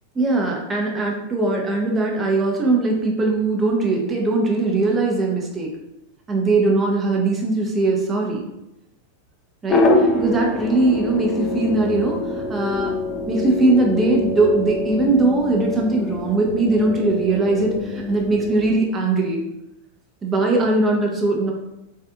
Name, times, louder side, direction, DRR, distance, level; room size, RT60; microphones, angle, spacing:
voice 1, 0.2-5.7 6.3-8.5 9.6-9.9 10.2-12.9 13.3-19.4 20.2-21.5, right 2 dB, 20° right, 0 dB, 0.6 m, -20 dB
sound 1, 9.7-18.8, left 2 dB, 25° left, 0.4 m, -25 dB
2.5 x 2.4 x 2.3 m, 0.89 s
figure-of-eight pair, 95°, 0 cm